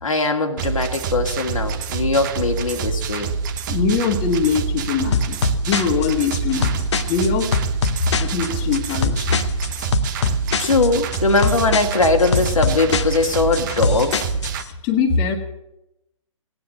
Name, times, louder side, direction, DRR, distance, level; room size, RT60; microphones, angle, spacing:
voice 1, 0.0-3.3 10.6-14.2, left 3 dB, 75° left, 3 dB, 2.1 m, -20 dB
sound 1, 0.6-14.6, right 5 dB, 35° right, 1.2 m, -26 dB
voice 2, 3.7-7.5 8.2-9.4 14.8-15.4, left 5 dB, 25° left, 2 dB, 1.8 m, -22 dB
sound 2, 5.1-14.6, left 5 dB, 55° left, 1.1 m, -24 dB
17.5 x 9.8 x 7.3 m, 0.84 s
figure-of-eight pair, 135°, 17 cm